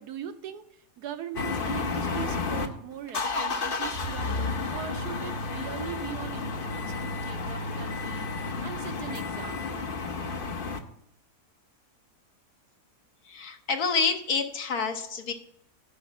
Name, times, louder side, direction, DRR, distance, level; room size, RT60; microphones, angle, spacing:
voice 1, 0.0-9.9, right 9 dB, 75° right, 1.3 m, -41 dB
sound 1, 1.4-2.7 3.1-10.8, left 3 dB, 45° left, 0.8 m, -31 dB
voice 2, 13.2-15.3, left 5 dB, 65° left, 1.5 m, -28 dB
11.0 x 5.1 x 7.3 m
omnidirectional pair, 1.7 m